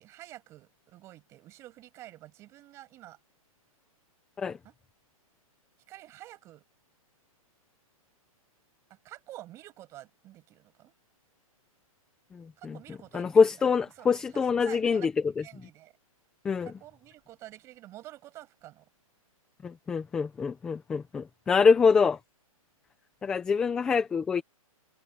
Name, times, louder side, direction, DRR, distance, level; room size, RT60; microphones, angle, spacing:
voice 1, 0.0-3.2 4.6-4.7 5.9-6.6 8.9-10.9 12.6-13.4 14.0-14.1 14.3-15.1 15.4-15.9 16.6-18.8, right 15 dB, 15° right, 7.3 m, -49 dB
voice 2, 12.3-12.8 13.1-15.1 16.4-16.7 19.6-22.2 23.2-24.4, left 5 dB, 5° left, 0.7 m, -25 dB
hypercardioid pair, 175°, 19 cm